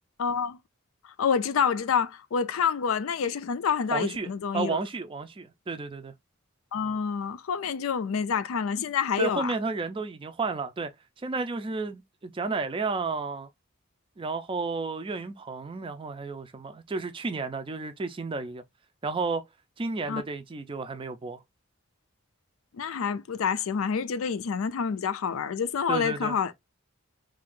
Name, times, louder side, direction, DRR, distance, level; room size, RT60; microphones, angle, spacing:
voice 1, 0.2-0.6 1.2-4.8 6.7-9.5 20.1-20.2 22.7-26.5, left 6 dB, 85° left, 0.4 m, -27 dB
voice 2, 3.9-4.3 4.5-6.1 9.2-10.9 11.2-13.5 14.2-18.6 19.0-19.4 19.8-21.4 25.9-26.3, right 4 dB, 25° right, 0.4 m, -32 dB
2.8 x 2.5 x 3.6 m
head